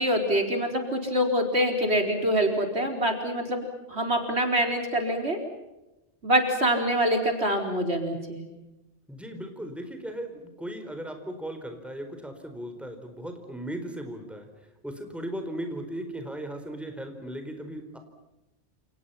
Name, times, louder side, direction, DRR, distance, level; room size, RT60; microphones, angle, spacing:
voice 1, 0.0-5.4 6.2-8.4, equal, 65° right, 4 dB, 4.8 m, -25 dB
voice 2, 9.1-14.5 14.8-18.0, right 1 dB, ahead, 6 dB, 4.4 m, -37 dB
29.5 x 29.0 x 5.8 m, 0.97 s
omnidirectional pair, 1.2 m